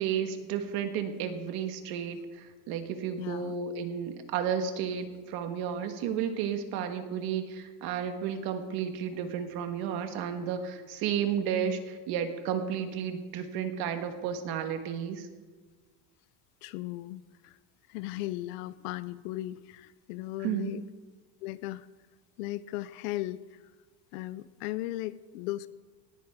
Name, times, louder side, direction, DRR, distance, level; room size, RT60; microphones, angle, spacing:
voice 1, 0.0-15.3 20.4-20.7, right 8 dB, 55° right, 7 dB, 1.5 m, -32 dB
voice 2, 3.2-3.6 16.6-17.6 17.9-20.8 21.4-21.9 22.4-23.6 24.1-25.7, left 16 dB, 85° left, 16 dB, 0.6 m, -37 dB
18.5 x 13.5 x 3.6 m, 1.4 s
cardioid pair, 165°, 45 cm